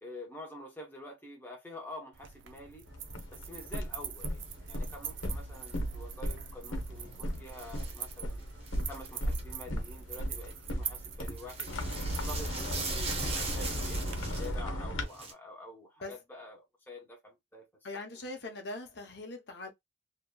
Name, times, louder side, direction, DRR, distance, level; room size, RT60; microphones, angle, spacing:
voice 1, 0.0-2.9 3.3-8.4 8.8-11.7 12.1-18.0, left 1 dB, 10° left, 0.8 m, -47 dB
sound 1, 2.1-14.2, right 9 dB, 75° right, 0.5 m, -45 dB
sound 2, 2.9-15.0, equal, 90° left, 0.9 m, -37 dB
sound 3, 4.5-9.4 10.0-11.0 11.3-15.3, right 3 dB, 30° right, 0.7 m, -40 dB
voice 2, 17.8-19.7, left 2 dB, 60° left, 0.8 m, -41 dB
2.8 x 2.7 x 2.2 m
head